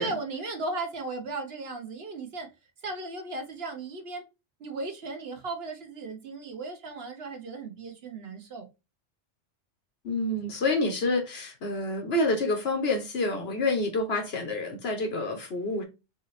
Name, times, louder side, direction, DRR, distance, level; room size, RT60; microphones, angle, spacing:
voice 1, 0.0-2.5 2.8-4.2 4.6-8.7, right 3 dB, 60° right, 1.1 m, -36 dB
voice 2, 10.0-15.8, left 2 dB, 60° left, 1.2 m, -28 dB
4.1 x 2.7 x 4.0 m
omnidirectional pair, 1.2 m